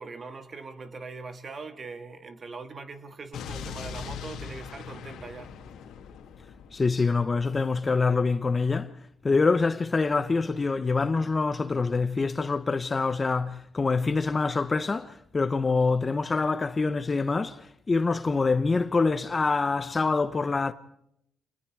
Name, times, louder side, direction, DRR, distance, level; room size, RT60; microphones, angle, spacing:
voice 1, 0.0-5.5, right 4 dB, 40° right, 2.3 m, -41 dB
Explosion, 3.3-7.4, left 6 dB, 80° left, 2.5 m, -40 dB
voice 2, 6.7-20.7, left 4 dB, 30° left, 1.0 m, -25 dB
28.5 x 20.0 x 4.9 m
cardioid pair, 90°, 0 cm